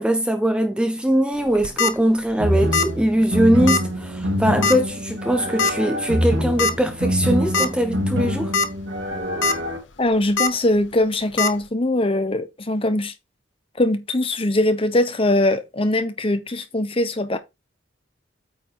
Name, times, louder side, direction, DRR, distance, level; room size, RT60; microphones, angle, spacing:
voice 1, 0.0-8.5, equal, 5° right, 0.5 m, -21 dB
sound 1, 1.5-1.9 2.7-3.0 3.2-3.3 3.7-3.8 4.6-4.9 5.6-5.7 6.6-6.7 7.2-7.3 7.5-7.7 8.3-8.7 9.1-9.5 10.4-10.5 11.4-11.5, left 4 dB, 70° left, 0.9 m, -20 dB
sound 2, 2.4-9.8, equal, 75° right, 2.6 m, -25 dB
voice 2, 10.0-13.1 13.8-17.4, left 1 dB, 30° left, 1.0 m, -21 dB
8.8 x 3.7 x 4.7 m
head